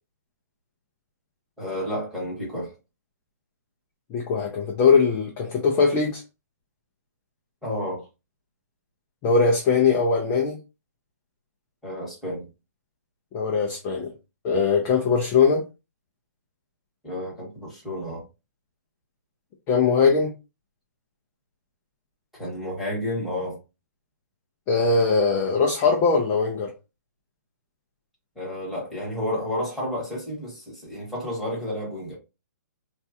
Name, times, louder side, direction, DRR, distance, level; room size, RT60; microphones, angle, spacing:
voice 1, 1.6-2.7 7.6-8.1 11.8-12.5 17.0-18.2 22.3-23.6 28.3-32.1, left 1 dB, ahead, 1.1 m, -31 dB
voice 2, 4.1-6.2 9.2-10.6 13.3-14.1 14.4-15.6 19.7-20.3 24.7-26.7, left 5 dB, 15° left, 0.4 m, -21 dB
3.2 x 2.3 x 2.7 m
hypercardioid pair, 165°, 10 cm